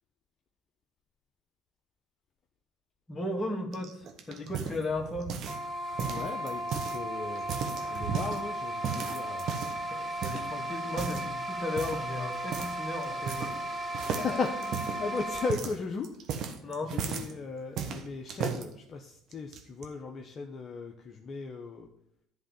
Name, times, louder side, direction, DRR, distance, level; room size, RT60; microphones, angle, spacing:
voice 1, 3.1-5.4 9.9-13.6 16.6-17.0, left 2 dB, 20° left, 2 dB, 1.9 m, -35 dB
sound 1, 3.7-5.7 6.0-7.0 7.4-8.4 8.8-9.8 10.2-10.5 10.9-11.3 11.8-12.1 12.5-12.8 13.0-13.7 13.9-17.3 17.8-18.6 19.3-19.9, right 7 dB, 60° right, 1.2 m, -35 dB
sound 2, 5.5-15.5, right 1 dB, 30° right, 1.3 m, -35 dB
voice 2, 5.9-7.4 7.9-9.5 14.1-16.1 16.9-21.9, left 4 dB, 40° left, 2 dB, 0.9 m, -37 dB
11.0 x 3.8 x 7.2 m, 0.73 s
hypercardioid pair, 75°, 0 cm